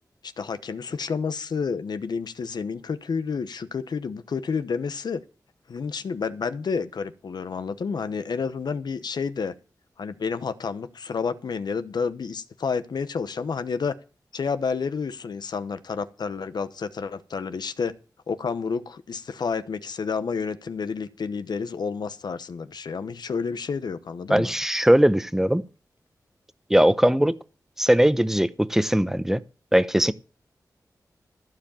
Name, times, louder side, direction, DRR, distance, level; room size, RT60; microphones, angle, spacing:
voice 1, 0.2-5.2 5.7-9.5 10.0-13.9 14.3-18.0 18.3-24.5, left 5 dB, 85° left, 1.0 m, -30 dB
voice 2, 24.3-25.6 26.7-27.4 27.8-29.4 29.7-30.1, equal, 5° right, 0.8 m, -20 dB
14.5 x 4.9 x 8.8 m
wide cardioid pair, 65°, 7 cm